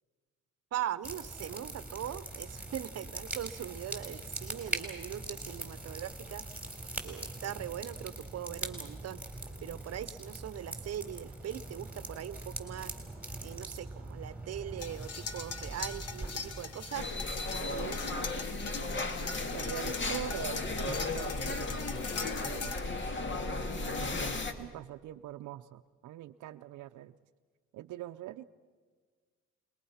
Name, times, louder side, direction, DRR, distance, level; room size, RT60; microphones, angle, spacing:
voice 1, 0.7-6.4 7.0-9.2 9.6-13.0 13.4-17.1, right 11 dB, 55° right, 16 dB, 0.9 m, -40 dB
sound 1, 1.0-17.3, right 2 dB, 5° right, 3.6 m, -42 dB
sound 2, 14.8-22.8, left 5 dB, 55° left, 1.7 m, -41 dB
sound 3, 16.9-24.5, left 3 dB, 40° left, 2.0 m, -35 dB
voice 2, 17.5-19.1 19.5-22.1 22.4-22.9 23.4-27.1 27.7-28.5, right 13 dB, 80° right, 7 dB, 0.7 m, -44 dB
30.0 x 21.0 x 5.8 m, 1.5 s
cardioid pair, 90°, 30 cm